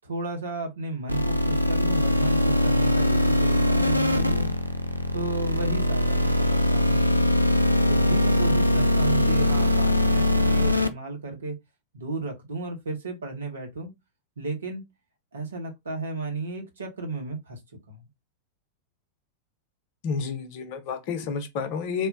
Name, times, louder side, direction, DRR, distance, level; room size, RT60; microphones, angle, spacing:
voice 1, 0.0-4.5 5.1-7.0 7.9-11.6 11.9-13.9 14.4-14.8 15.3-17.6 17.9-18.0, right 3 dB, 70° right, 1.0 m, -33 dB
sound 1, 1.1-10.9, left 1 dB, 90° left, 0.3 m, -22 dB
voice 2, 20.0-22.1, left 5 dB, 45° left, 0.7 m, -30 dB
3.5 x 2.1 x 2.6 m
figure-of-eight pair, 90°, 0 cm